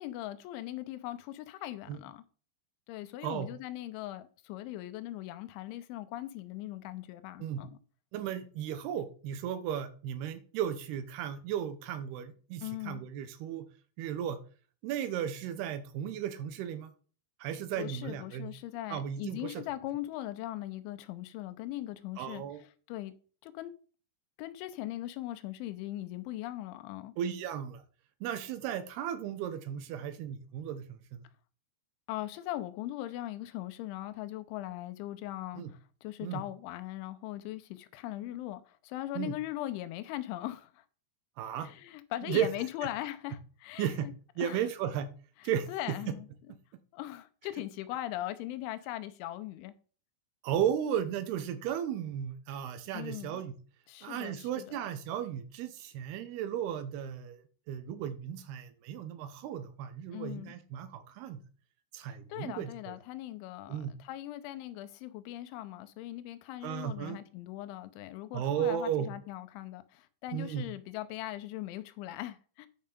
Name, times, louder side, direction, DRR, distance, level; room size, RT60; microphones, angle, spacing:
voice 1, 0.0-2.2 2.9-7.8 12.6-13.0 17.8-23.1 23.4-23.7 24.4-27.1 32.1-40.8 41.6-44.1 44.4-44.7 45.4-46.3 46.9-49.7 52.9-53.4 53.9-54.8 60.1-60.5 62.0-72.7, left 14 dB, 90° left, 3.1 m, -40 dB
voice 2, 8.1-13.7 14.0-14.4 14.8-16.9 17.4-18.5 18.9-19.6 22.2-22.6 27.2-27.8 28.2-31.2 35.6-35.7 36.2-36.4 39.2-39.3 41.4-41.7 42.3-42.5 43.8-44.1 44.4-45.1 45.4-45.7 50.4-53.5 54.0-57.4 57.7-61.4 61.9-62.9 63.7-63.9 66.6-67.2 68.3-69.1 70.3-70.6, right 9 dB, 75° right, 2.7 m, -35 dB
10.0 x 5.5 x 5.1 m
omnidirectional pair, 5.3 m